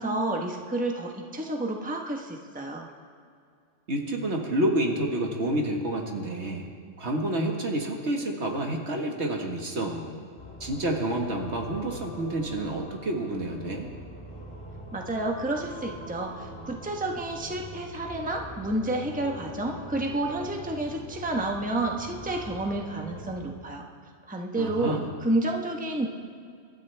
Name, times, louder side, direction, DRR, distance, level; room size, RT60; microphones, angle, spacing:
voice 1, 0.0-2.9 14.9-23.8 24.3-26.1, right 2 dB, 5° right, 1 dB, 1.1 m, -30 dB
voice 2, 3.9-6.7 7.0-10.2 10.6-13.9 24.5-25.1, right 1 dB, 60° right, 1 dB, 1.9 m, -29 dB
sound 1, 10.4-23.3, equal, 50° left, 3.1 m, -43 dB
27.0 x 12.5 x 3.4 m, 2.3 s
omnidirectional pair, 1.3 m